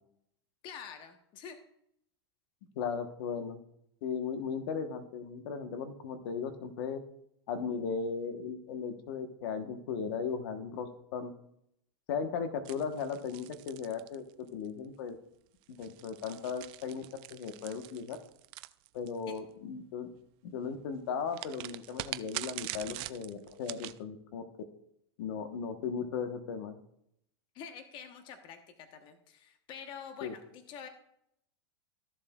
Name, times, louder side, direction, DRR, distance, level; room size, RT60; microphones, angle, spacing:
voice 1, 0.6-1.6 19.3-19.4 27.5-30.9, left 7 dB, 35° left, 7 dB, 1.0 m, -47 dB
voice 2, 2.8-3.6 4.0-7.0 7.5-11.3 12.1-15.1 15.7-18.2 18.9-20.1 20.4-24.4 25.2-26.8 30.2-30.3, left 6 dB, 60° left, 8 dB, 1.1 m, -37 dB
sound 1, 12.6-14.7 15.6-19.4 21.3-24.0, right 19 dB, 40° right, 0.4 m, -43 dB
13.5 x 7.2 x 2.3 m, 0.74 s
supercardioid pair, 135°, 14 cm